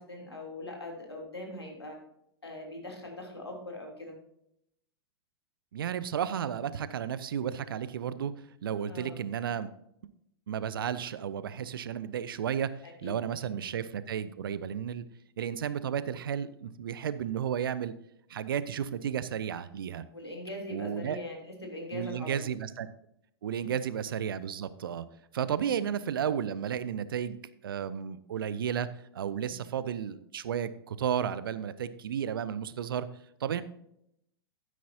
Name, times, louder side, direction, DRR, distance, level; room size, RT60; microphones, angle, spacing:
voice 1, 0.0-2.0 2.4-4.2 8.9-9.2 12.8-13.6 20.1-22.5 23.6-23.8 25.6-25.8 29.4-29.7, left 1 dB, 80° left, 1 dB, 3.2 m, -42 dB
voice 2, 5.7-8.3 8.6-9.7 10.5-12.7 13.0-15.1 15.4-17.9 18.3-20.0 20.7-21.2 21.9-22.9 23.4-25.0 25.3-27.4 27.6-28.9 29.1-33.1 33.4-33.6, right 8 dB, 60° right, 15 dB, 0.7 m, -33 dB
12.5 x 9.4 x 2.8 m, 0.78 s
figure-of-eight pair, 100°, 13 cm